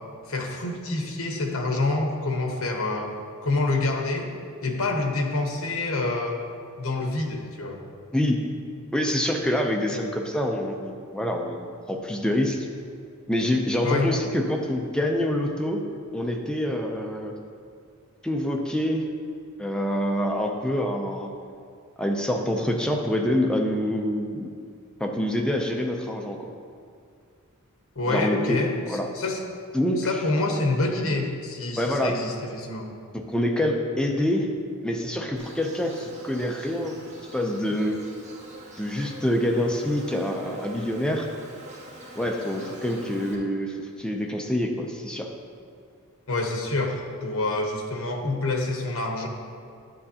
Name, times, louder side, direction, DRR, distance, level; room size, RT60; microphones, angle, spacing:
voice 1, 0.3-3.1 3.4-4.3 4.6-6.4 6.8-7.8 13.8-14.1 27.9-29.4 30.0-32.9 46.3-49.3, left 2 dB, 65° left, 2 dB, 1.1 m, -27 dB
voice 2, 8.9-12.7 13.3-15.9 16.1-17.3 18.2-19.1 19.6-21.3 22.0-24.5 25.0-26.5 28.1-28.6 28.9-29.1 29.7-30.1 31.8-32.2 33.1-34.5 34.8-37.0 37.3-38.0 38.8-41.3 42.2-45.3, left 1 dB, 5° left, 2 dB, 0.5 m, -26 dB
Insect, 35.4-43.4, right 1 dB, 35° right, 1.3 m, -44 dB
11.0 x 7.8 x 2.8 m, 2.3 s
head